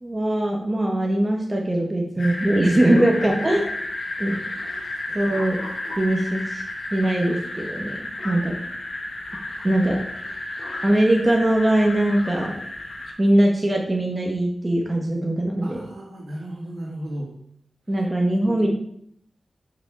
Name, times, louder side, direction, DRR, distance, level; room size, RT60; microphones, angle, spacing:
voice 1, 0.0-3.6 4.2-4.4 5.1-5.6 6.0-6.6 6.9-8.5 9.6-10.0 10.8-12.5 13.2-15.8 17.9-18.7, right 1 dB, 20° right, 0 dB, 1.6 m, -21 dB
sound 1, 2.2-13.1, left 1 dB, 60° left, 1.6 m, -32 dB
voice 2, 4.7-5.2 15.6-17.3 18.5-18.6, right 1 dB, 75° right, -5 dB, 2.2 m, -35 dB
9.6 x 5.7 x 4.9 m, 0.68 s
wide cardioid pair, 100°, 0 cm